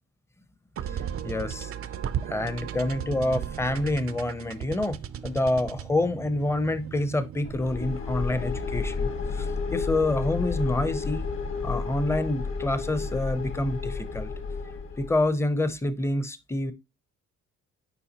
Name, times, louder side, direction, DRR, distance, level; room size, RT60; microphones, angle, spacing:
sound 1, 0.8-8.1, right 9 dB, 50° right, 0.5 m, -36 dB
voice 1, 0.9-1.7 2.2-11.3 11.6-14.3 15.0-16.7, left 2 dB, 10° left, 0.6 m, -27 dB
sound 2, 7.4-15.2, left 4 dB, 45° left, 1.3 m, -31 dB
6.9 x 4.7 x 2.9 m
cardioid pair, 90°, 30 cm